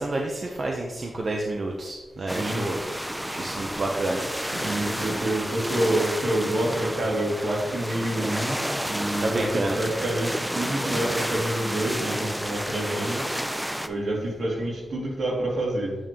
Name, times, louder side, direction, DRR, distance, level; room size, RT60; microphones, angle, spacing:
voice 1, 0.0-4.2 9.2-9.8, right 2 dB, 50° right, 0 dB, 0.8 m, -29 dB
sound 1, 2.3-13.9, equal, 5° right, 0.4 m, -30 dB
voice 2, 2.3-2.7 3.4-3.7 4.5-13.3 13.9-16.0, right 1 dB, 75° right, -3 dB, 2.4 m, -28 dB
9.0 x 5.3 x 3.0 m, 1.2 s
wide cardioid pair, 100°, 0 cm